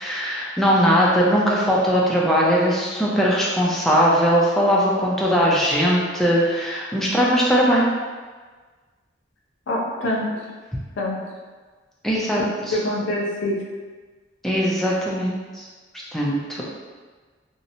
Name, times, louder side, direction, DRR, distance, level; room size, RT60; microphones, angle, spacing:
voice 1, 0.0-7.9 12.0-12.4 12.7-12.8 14.4-15.7 16.1-16.6, equal, ahead, -5 dB, 0.3 m, -20 dB
voice 2, 9.7-10.3 11.0-11.2 12.7-13.6, left 1 dB, 75° left, -1 dB, 0.5 m, -24 dB
2.7 x 2.0 x 2.6 m, 1.4 s
head